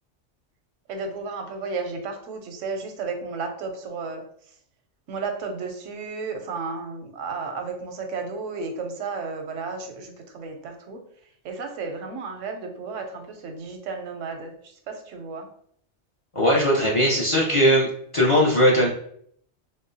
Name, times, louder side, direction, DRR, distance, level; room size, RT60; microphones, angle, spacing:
voice 1, 0.9-4.2 5.1-11.0 11.4-15.5, right 4 dB, 85° right, 5 dB, 1.0 m, -33 dB
voice 2, 16.3-17.9 18.1-18.9, equal, 35° left, -5 dB, 0.5 m, -19 dB
3.7 x 2.0 x 2.6 m, 0.64 s
omnidirectional pair, 1.3 m